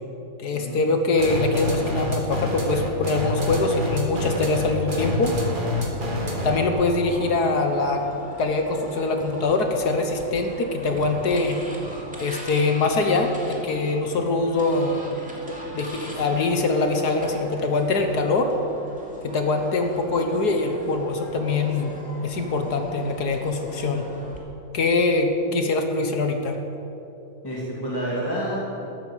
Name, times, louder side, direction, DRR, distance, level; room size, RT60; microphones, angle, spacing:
voice 1, 0.4-5.3 6.4-8.0 8.4-11.6 12.2-15.0 15.7-18.5 19.2-21.9 22.2-24.1 24.7-26.6, left 3 dB, 60° left, 5 dB, 1.6 m, -23 dB
sound 1, 1.2-6.7, left 1 dB, 25° right, 2.0 m, -27 dB
sound 2, 5.3-24.4, right 1 dB, 5° right, 2.4 m, -40 dB
voice 2, 27.4-28.9, equal, 10° left, -6 dB, 2.4 m, -29 dB
13.5 x 12.5 x 7.3 m, 3.0 s
omnidirectional pair, 2.1 m